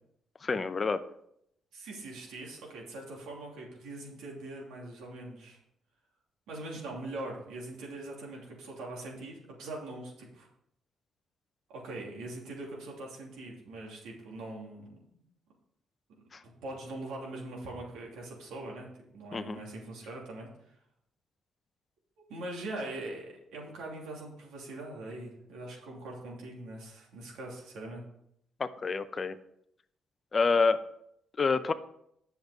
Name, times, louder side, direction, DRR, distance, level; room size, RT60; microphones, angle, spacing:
voice 1, 0.4-1.0 16.3-16.4 19.3-19.6 28.6-29.4 30.3-30.8 31.4-31.7, left 4 dB, 35° left, 12 dB, 0.6 m, -27 dB
voice 2, 1.7-5.6 6.5-10.5 11.7-14.9 16.4-18.9 19.1-20.5 22.3-28.0, right 2 dB, 90° right, -2 dB, 2.9 m, -42 dB
8.5 x 6.7 x 4.9 m, 0.74 s
cardioid pair, 90°, 0 cm